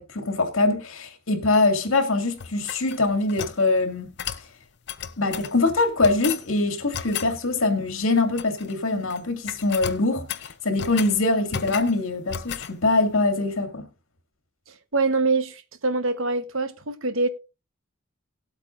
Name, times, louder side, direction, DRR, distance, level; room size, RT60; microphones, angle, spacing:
voice 1, 0.0-4.2 5.2-13.8, left 3 dB, 80° left, 2.2 m, -23 dB
sound 1, 2.4-3.6 4.2-4.5 4.9-5.5 6.0-6.5 6.9-7.3 8.1-8.7 9.0-9.2 9.5-11.2 11.5-12.0 12.3-12.7, left 8 dB, 55° left, 0.7 m, -34 dB
voice 2, 14.9-17.3, right 3 dB, 70° right, 1.1 m, -24 dB
19.0 x 8.2 x 2.5 m
head